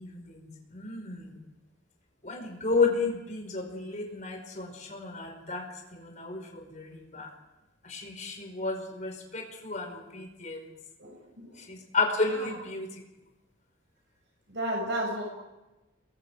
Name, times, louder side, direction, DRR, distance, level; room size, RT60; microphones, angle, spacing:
voice 1, 0.0-1.3 2.2-7.3 7.8-10.7 11.6-12.9, left 3 dB, 35° left, 3 dB, 5.1 m, -32 dB
voice 2, 11.0-11.7 12.3-12.5 14.5-15.2, right 1 dB, 60° right, 0 dB, 6.4 m, -33 dB
29.5 x 23.0 x 4.9 m, 1.0 s
head